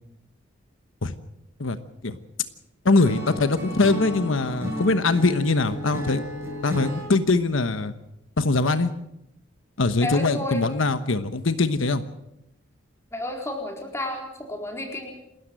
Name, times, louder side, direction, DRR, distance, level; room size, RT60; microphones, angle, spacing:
voice 1, 2.8-6.3 6.6-7.9 8.4-8.9 9.8-12.0, left 3 dB, 80° left, 11 dB, 1.1 m, -22 dB
Acoustic guitar / Strum, 3.0-7.1, left 1 dB, 10° right, 7.4 m, -33 dB
voice 2, 10.0-10.6 13.1-15.1, left 2 dB, 15° left, 2 dB, 4.3 m, -31 dB
28.5 x 13.5 x 7.7 m, 0.84 s
head